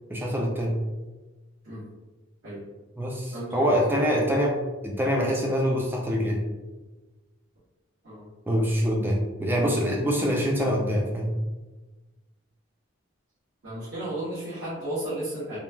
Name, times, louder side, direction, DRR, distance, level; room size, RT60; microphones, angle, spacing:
voice 1, 0.1-0.8 3.0-6.4 8.5-11.3, equal, 10° right, -1 dB, 0.3 m, -25 dB
voice 2, 3.3-3.8 8.0-8.3 13.6-15.6, right 1 dB, 65° right, -13 dB, 1.0 m, -33 dB
3.0 x 2.3 x 2.2 m, 1.2 s
head